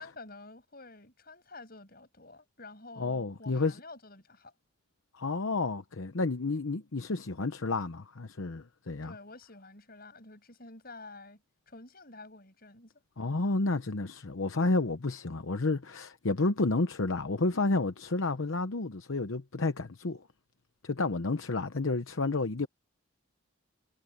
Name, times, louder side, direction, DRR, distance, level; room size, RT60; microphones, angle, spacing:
voice 1, 0.0-4.5 9.0-13.0, left 3 dB, 45° left, 7.2 m, -49 dB
voice 2, 3.0-3.8 5.1-9.1 13.2-20.2 20.8-22.7, left 3 dB, 65° left, 0.9 m, -30 dB
head